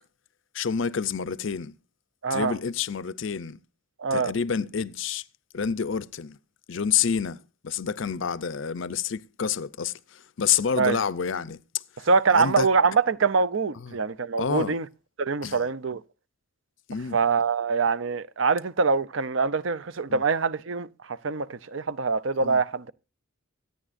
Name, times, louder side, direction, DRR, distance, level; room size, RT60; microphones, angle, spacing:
voice 1, 0.5-1.8 2.3-3.6 4.1-5.2 5.5-6.4 6.7-12.7 13.8-14.0 14.4-14.8 15.4-15.7 16.9-17.2 20.1-20.2 22.4-22.6, left 7 dB, 65° left, 0.6 m, -29 dB
voice 2, 2.2-2.6 4.0-4.3 10.8-11.0 12.1-14.9 15.2-16.0 17.1-22.9, right 4 dB, 65° right, 0.6 m, -24 dB
24.5 x 9.8 x 2.6 m
head